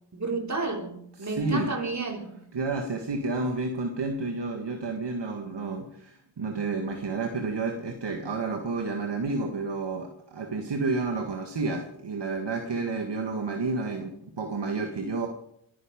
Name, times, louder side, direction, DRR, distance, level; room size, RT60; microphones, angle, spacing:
voice 1, 0.1-2.3, right 3 dB, 35° right, 3 dB, 3.6 m, -31 dB
voice 2, 1.2-1.8 2.5-15.3, right 3 dB, 60° right, 3 dB, 2.0 m, -30 dB
23.5 x 10.0 x 5.3 m, 0.70 s
cardioid pair, 60°, 47 cm